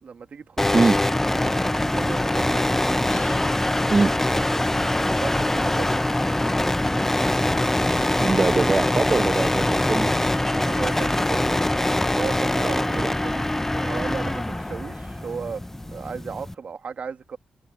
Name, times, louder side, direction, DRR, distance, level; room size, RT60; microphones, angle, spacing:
voice 1, 0.0-3.0 3.8-6.3 10.5-11.6 12.2-17.4, right 6 dB, 60° right, 2.4 m, -36 dB
sound 1, 0.6-16.5, left 1 dB, 15° left, 0.8 m, -23 dB
sound 2, 3.1-4.9, left 10 dB, 85° left, 7.6 m, -46 dB
Boiling, 3.6-9.3, left 2 dB, 30° left, 3.8 m, -41 dB
voice 2, 8.2-10.1 12.9-13.1, right 3 dB, 35° right, 1.0 m, -22 dB
open air
cardioid pair, 60°, 3 cm